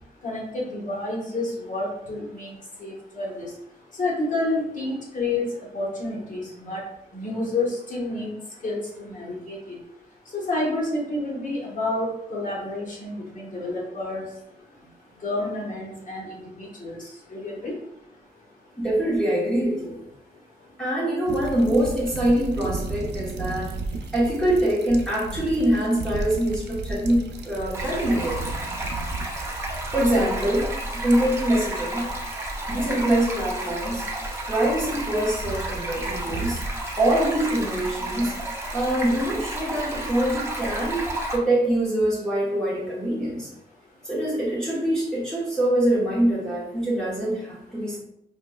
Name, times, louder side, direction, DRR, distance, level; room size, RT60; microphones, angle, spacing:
voice 1, 0.2-2.5 2.8-3.5 4.0-5.4 5.7-6.8 7.1-8.3 8.6-9.8 10.3-14.3 15.2-17.0 17.3-17.7, left 2 dB, 50° left, -4 dB, 1.3 m, -29 dB
voice 2, 18.8-20.0 20.8-23.8 24.1-28.4 29.9-32.0 32.7-34.0 34.5-36.6 37.0-43.5 44.0-48.0, right 1 dB, 5° left, -8 dB, 1.0 m, -24 dB
sound 1, 21.3-38.7, right 3 dB, 85° right, 0.5 m, -36 dB
Stream, 27.7-41.4, right 1 dB, 15° right, 0.6 m, -32 dB
4.7 x 2.9 x 2.3 m, 0.78 s
wide cardioid pair, 150°, 17 cm